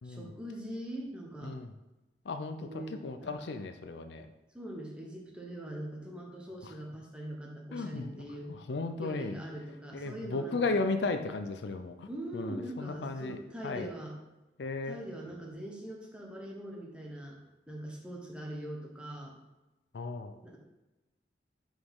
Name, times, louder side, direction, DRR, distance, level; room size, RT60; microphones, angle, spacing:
voice 1, 0.0-1.5 2.6-3.3 4.5-8.5 9.0-10.8 12.1-14.2 14.8-17.4 17.7-19.3 20.4-20.6, right 1 dB, 5° right, -1 dB, 1.0 m, -42 dB
voice 2, 2.3-4.3 6.6-6.7 7.7-8.2 8.5-9.4 9.9-13.4 13.6-13.9 14.6-15.0 19.9-20.3, left 3 dB, 70° left, 8 dB, 0.5 m, -35 dB
6.3 x 4.9 x 3.6 m, 1.0 s
head